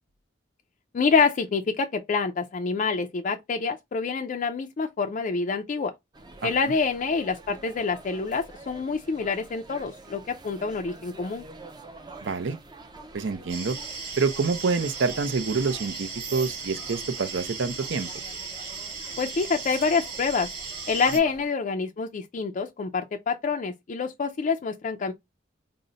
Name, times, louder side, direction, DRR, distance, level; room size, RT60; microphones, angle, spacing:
voice 1, 0.9-5.9 6.4-11.4 19.2-20.5 20.9-25.1, left 4 dB, 40° left, 0.4 m, -27 dB
sound 1, 6.1-21.5, right 2 dB, 25° right, 0.5 m, -47 dB
voice 2, 12.2-12.6 13.1-13.8 14.2-18.1, right 4 dB, 70° right, 0.5 m, -27 dB
sound 2, 13.5-21.2, right 5 dB, 55° right, 1.6 m, -37 dB
3.8 x 2.0 x 3.9 m
head